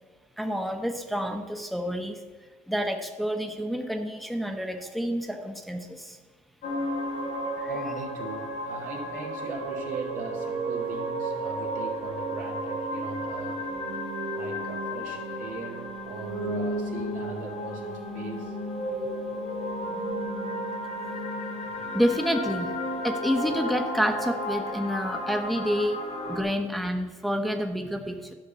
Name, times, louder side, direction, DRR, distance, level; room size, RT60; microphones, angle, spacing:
voice 1, 0.4-2.2 2.7-6.2 7.6-7.7 19.9-20.1 21.9-22.7 23.0-28.3, equal, ahead, 6 dB, 1.0 m, -29 dB
sound 1, 6.6-26.4, equal, 85° left, 2.0 m, -33 dB
voice 2, 7.7-13.7 14.3-18.5, right 4 dB, 80° right, 1 dB, 2.0 m, -39 dB
11.5 x 5.7 x 6.9 m, 1.4 s
cardioid pair, 80°, 13 cm